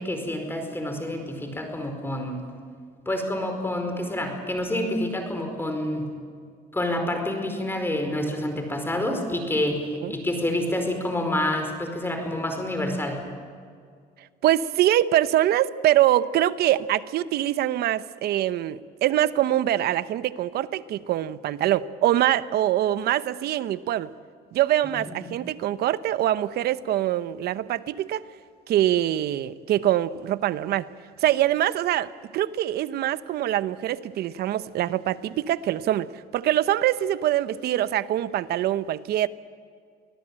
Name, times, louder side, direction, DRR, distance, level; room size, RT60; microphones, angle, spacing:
voice 1, 0.0-2.4 3.0-6.1 6.7-13.2 24.8-25.3, left 1 dB, 15° left, 5 dB, 4.9 m, -28 dB
voice 2, 14.4-24.1 24.5-28.2 28.7-30.9 31.2-39.3, right 12 dB, 70° right, 15 dB, 0.9 m, -24 dB
24.5 x 17.5 x 8.9 m, 2.1 s
cardioid pair, 110°, 17 cm